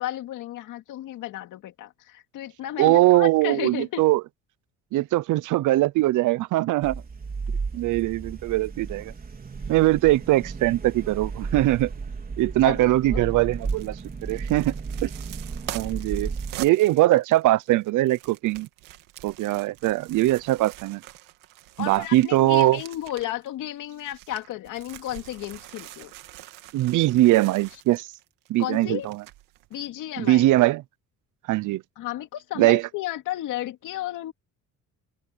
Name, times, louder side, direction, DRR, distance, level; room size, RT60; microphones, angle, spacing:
voice 1, 0.0-4.0 12.6-13.2 21.8-26.1 28.6-29.1 29.7-30.5 32.0-34.3, left 13 dB, 75° left, 2.4 m, -33 dB
voice 2, 2.8-4.2 4.9-7.0 7.7-9.1 9.7-11.9 12.4-14.0 14.2-14.7 15.0-15.1 15.7-16.3 16.6-18.7 19.2-21.0 21.8-22.8 26.7-28.1 28.5-29.2 30.2-30.8 31.5-31.8 32.6-32.8, right 16 dB, 70° right, 0.8 m, -21 dB
sound 1, 6.8-16.5, right 5 dB, 30° right, 4.2 m, -34 dB
sound 2, 13.5-23.5 23.8-29.9 30.2-30.3, right 16 dB, 90° right, 2.1 m, -44 dB
open air
cardioid pair, 115°, 32 cm